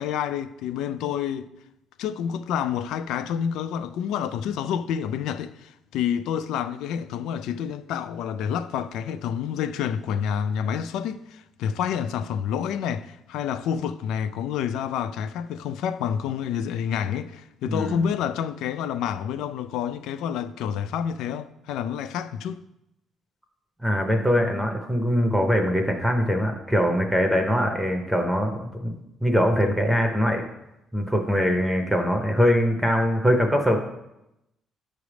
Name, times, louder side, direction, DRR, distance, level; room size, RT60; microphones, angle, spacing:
voice 1, 0.0-1.5 2.0-22.6, left 8 dB, 90° left, 0.3 m, -28 dB
voice 2, 17.7-18.0 23.8-28.9 29.2-30.4 30.9-33.8, equal, 5° right, 0.7 m, -22 dB
8.0 x 3.3 x 6.1 m
cardioid pair, 150°, 0 cm